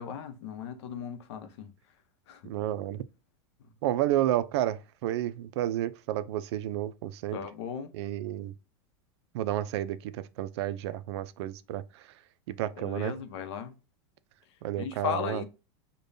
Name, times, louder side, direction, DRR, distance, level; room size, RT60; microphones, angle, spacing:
voice 1, 0.0-1.7 2.3-2.4 7.3-7.9 12.8-13.7 14.8-15.4, left 8 dB, 75° left, 0.7 m, -36 dB
voice 2, 2.4-3.0 3.8-7.4 7.9-8.5 9.3-10.1 10.4-11.8 12.5-13.1 14.6-15.4, right 13 dB, 70° right, 0.4 m, -31 dB
5.1 x 2.2 x 2.6 m
supercardioid pair, 135°, 14 cm